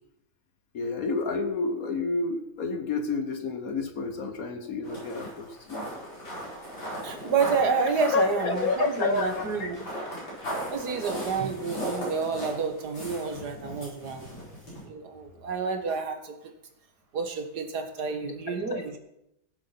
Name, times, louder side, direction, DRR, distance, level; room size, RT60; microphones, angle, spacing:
voice 1, 0.7-5.9 8.1-9.7 18.3-18.8, left 3 dB, 50° left, 6 dB, 1.4 m, -29 dB
sound 1, 4.8-14.8, equal, 70° left, 6.2 m, -37 dB
voice 2, 7.0-9.9 10.7-14.3 14.8-16.5 17.1-19.0, right 5 dB, 55° right, 6 dB, 2.0 m, -29 dB
16.5 x 7.5 x 5.8 m, 0.83 s
omnidirectional pair, 2.2 m